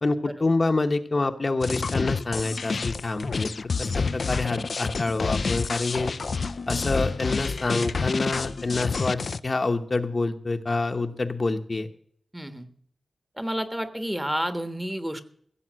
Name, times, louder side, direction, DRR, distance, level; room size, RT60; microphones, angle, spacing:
voice 1, 0.0-3.5 3.8-6.1 6.7-11.9, left 3 dB, 45° left, 7 dB, 0.9 m, -27 dB
sound 1, 1.6-9.4, left 4 dB, 65° left, 0.4 m, -28 dB
voice 2, 12.3-12.7 13.4-15.3, equal, 10° right, 9 dB, 1.3 m, -30 dB
15.5 x 7.2 x 7.4 m, 0.62 s
wide cardioid pair, 95°, 0 cm